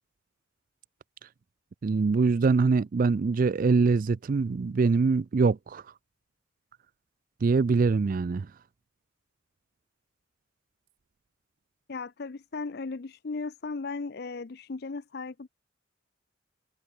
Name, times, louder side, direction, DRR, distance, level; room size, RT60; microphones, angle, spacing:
voice 1, 1.8-5.8 7.4-8.5, right 4 dB, 45° right, 0.3 m, -23 dB
voice 2, 11.9-15.5, left 4 dB, 50° left, 0.6 m, -36 dB
head